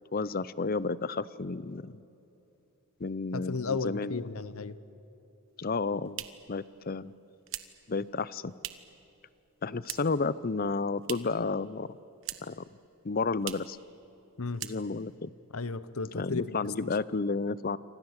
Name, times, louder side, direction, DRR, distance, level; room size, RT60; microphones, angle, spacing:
voice 1, 0.1-2.0 3.0-4.3 5.6-7.1 7.9-8.5 9.6-11.9 12.4-12.7 13.0-13.8 14.6-15.3 16.1-17.8, left 4 dB, 40° left, 18 dB, 0.6 m, -32 dB
voice 2, 3.3-4.8 14.4-14.6 15.5-16.4 16.8-16.9, left 4 dB, 75° left, 15 dB, 1.0 m, -34 dB
sound 1, 5.6-9.0 9.3-10.3 10.6-11.5 11.8-12.7 12.9-13.0 13.4-13.8 14.1-14.3 14.5-15.2, right 13 dB, 60° right, 1.3 m, -42 dB
28.5 x 25.5 x 8.1 m, 2.9 s
head